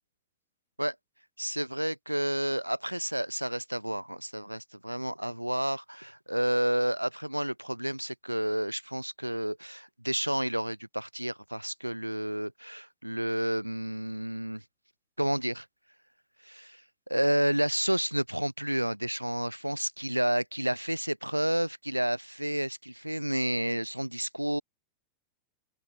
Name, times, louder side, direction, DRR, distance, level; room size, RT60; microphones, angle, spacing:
voice 1, 1.4-14.6 15.2-15.6 16.4-16.8 17.1-24.6, right 1 dB, 90° right, 0.9 m, -30 dB
open air
figure-of-eight pair, 90°, 0 cm